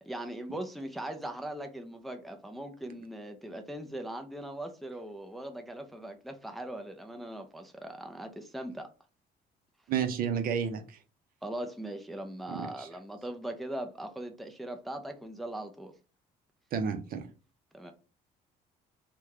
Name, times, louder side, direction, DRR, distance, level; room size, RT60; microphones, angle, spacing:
voice 1, 0.0-8.9 11.4-15.9 17.7-17.9, right 1 dB, ahead, 0.4 m, -40 dB
voice 2, 9.9-11.0 12.5-12.9 16.7-17.3, right 7 dB, 60° right, 0.6 m, -31 dB
3.1 x 2.2 x 3.6 m
cardioid pair, 110°, 17 cm